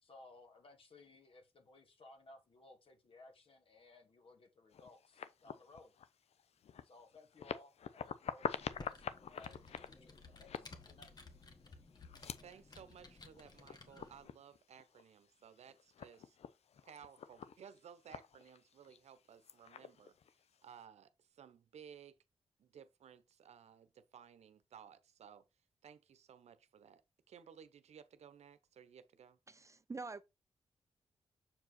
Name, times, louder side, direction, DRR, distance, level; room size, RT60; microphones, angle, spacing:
voice 1, 0.0-5.9 6.8-11.1, left 2 dB, 55° left, 2.3 m, -60 dB
sound 1, 4.7-20.8, left 8 dB, 75° left, 0.6 m, -48 dB
Computer keyboard, 8.4-14.2, left 3 dB, 40° left, 1.5 m, -56 dB
voice 2, 12.4-16.4 16.8-20.2 20.6-22.2 22.6-25.5 25.8-29.4, right 8 dB, 85° right, 0.8 m, -58 dB
voice 3, 29.5-30.2, right 3 dB, 30° right, 0.4 m, -46 dB
7.3 x 4.8 x 4.3 m
wide cardioid pair, 110°, 11 cm